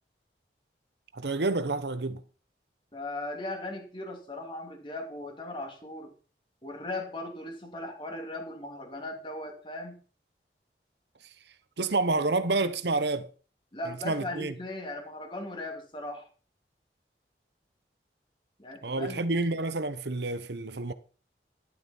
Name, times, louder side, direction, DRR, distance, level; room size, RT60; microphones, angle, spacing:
voice 1, 1.1-2.2 11.8-13.3 13.9-14.5 18.8-20.9, right 3 dB, 80° right, 1.0 m, -29 dB
voice 2, 2.9-6.1 6.6-10.0 13.7-16.3 18.6-19.2, left 2 dB, 30° left, 2.9 m, -38 dB
12.0 x 11.5 x 4.5 m
head